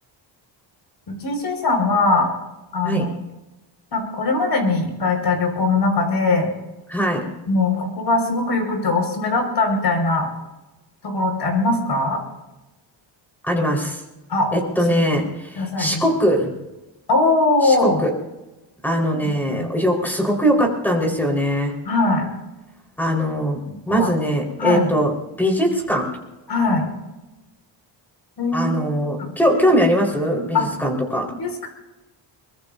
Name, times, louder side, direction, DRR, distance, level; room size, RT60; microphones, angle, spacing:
voice 1, 1.1-2.3 2.7-3.1 3.9-6.5 7.5-10.3 11.0-12.2 14.3-14.5 15.6-16.0 17.1-18.0 19.1-19.7 21.9-22.3 23.7-24.1 24.6-24.9 26.5-26.9 28.4-28.7 29.2-29.3 30.5-30.7 31.3-31.7, left 3 dB, 55° left, 3 dB, 5.2 m, -21 dB
voice 2, 6.9-7.3 13.4-14.0 14.5-16.5 17.6-18.1 18.8-21.7 23.0-23.6 23.9-25.1 25.4-26.1 28.5-31.3, equal, 5° left, 1 dB, 4.3 m, -21 dB
23.5 x 22.0 x 2.7 m, 1.0 s
wide cardioid pair, 145°, 46 cm